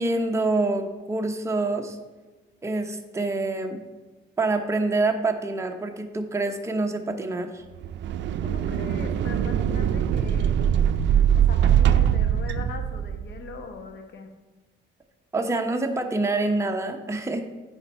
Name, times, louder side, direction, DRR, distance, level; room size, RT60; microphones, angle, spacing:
voice 1, 0.0-2.0 2.6-3.8 4.4-7.6 15.3-17.4, right 2 dB, 15° right, 4 dB, 0.8 m, -26 dB
sound 1, 7.8-13.4, right 9 dB, 65° right, 0.4 m, -22 dB
voice 2, 8.4-10.6 11.3-14.3, left 4 dB, 60° left, 5 dB, 1.2 m, -40 dB
9.7 x 4.5 x 4.2 m, 1.3 s
cardioid pair, 90°, 20 cm